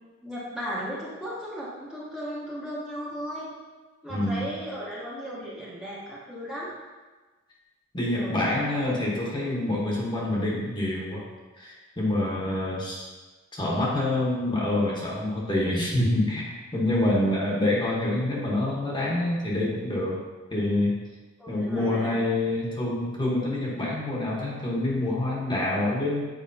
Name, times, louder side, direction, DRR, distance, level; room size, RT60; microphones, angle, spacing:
voice 1, 0.2-3.5 4.0-6.7 8.0-8.6 21.4-22.1, equal, 5° right, -8 dB, 1.0 m, -36 dB
voice 2, 4.1-4.5 7.9-11.2 11.5-13.1 13.5-20.2 20.5-21.0 21.5-26.3, left 1 dB, 25° left, -4 dB, 1.1 m, -26 dB
7.6 x 4.9 x 2.7 m, 1.3 s
head